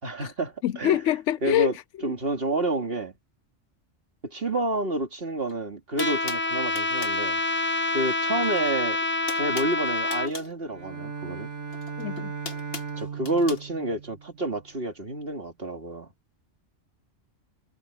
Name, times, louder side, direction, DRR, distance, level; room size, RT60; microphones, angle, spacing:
voice 1, 0.0-1.0 1.4-1.7 2.0-3.1 4.2-7.4 7.9-9.0 9.3-11.5 13.0-16.1, right 2 dB, 50° right, 2.8 m, -29 dB
voice 2, 0.6-1.7 2.0-2.1 12.0-12.3, left 12 dB, 75° left, 0.9 m, -24 dB
sound 1, 5.5-5.6 6.0-7.2 8.4-8.7 9.0-10.5 11.7-13.6, left 4 dB, 50° left, 1.9 m, -39 dB
Trumpet, 6.0-10.3, left 2 dB, 10° left, 0.7 m, -27 dB
Bowed string instrument, 10.6-14.8, right 5 dB, 65° right, 2.6 m, -37 dB
omnidirectional pair, 1.3 m